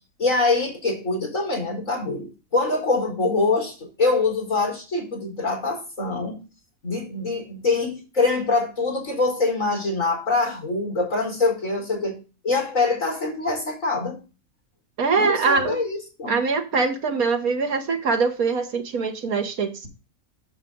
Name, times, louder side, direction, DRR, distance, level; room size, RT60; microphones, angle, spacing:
voice 1, 0.2-6.4 6.8-12.2 12.4-14.2 15.2-16.4, left 3 dB, 65° left, -1 dB, 4.5 m, -24 dB
voice 2, 15.0-15.8 16.3-19.9, right 4 dB, 80° right, 5 dB, 1.8 m, -23 dB
8.1 x 7.4 x 3.8 m, 0.31 s
omnidirectional pair, 1.5 m